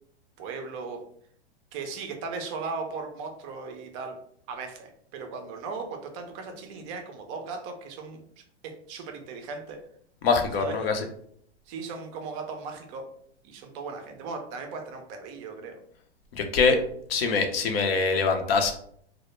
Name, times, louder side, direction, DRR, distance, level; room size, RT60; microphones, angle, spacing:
voice 1, 0.4-1.0 1.7-4.2 4.5-8.2 8.6-9.8 10.6-10.9 11.7-13.1 13.4-15.8, right 4 dB, 30° right, 5 dB, 0.4 m, -37 dB
voice 2, 10.2-11.0 16.3-16.8 17.1-18.7, left 4 dB, 60° left, 5 dB, 0.6 m, -23 dB
2.1 x 2.0 x 3.0 m, 0.65 s
hypercardioid pair, 115°, 33 cm